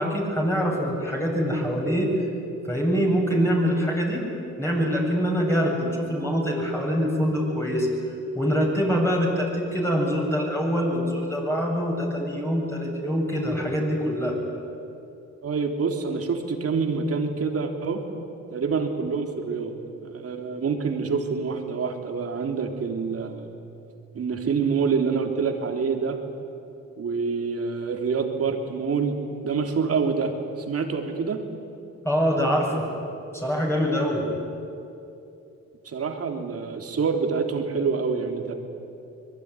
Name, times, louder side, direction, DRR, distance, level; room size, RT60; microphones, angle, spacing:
voice 1, 0.0-2.1 2.6-4.2 4.6-7.9 8.3-14.4 32.0-32.9 33.3-34.2, equal, 10° left, -2 dB, 7.7 m, -24 dB
voice 2, 15.4-18.0 18.5-19.7 20.0-23.5 24.1-26.2 27.0-29.2 29.4-30.3 30.7-31.4 35.9-38.5, right 5 dB, 50° right, 4 dB, 3.6 m, -26 dB
25.0 x 22.0 x 9.9 m, 2.8 s
cardioid pair, 90°, 30 cm